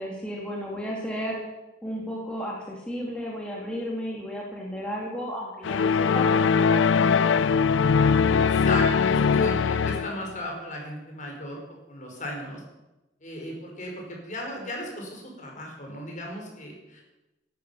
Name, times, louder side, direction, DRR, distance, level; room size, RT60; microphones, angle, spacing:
voice 1, 0.0-1.4 1.8-7.4, equal, 5° left, -3 dB, 2.5 m, -34 dB
sound 1, 5.6-10.3, left 5 dB, 70° left, 0.4 m, -21 dB
voice 2, 8.3-11.6 11.9-12.6 13.2-17.0, left 1 dB, 40° left, 0 dB, 5.1 m, -35 dB
14.5 x 11.5 x 7.0 m, 1.0 s
head